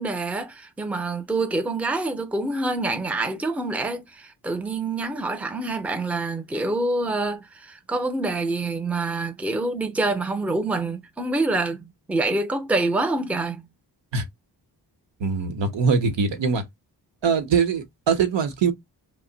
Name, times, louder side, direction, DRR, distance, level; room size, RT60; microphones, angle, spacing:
voice 1, 0.0-13.7, right 2 dB, 5° right, 0.5 m, -26 dB
voice 2, 15.2-16.6 17.2-18.7, right 5 dB, 80° right, 0.9 m, -22 dB
2.6 x 2.1 x 3.7 m
wide cardioid pair, 80°, 43 cm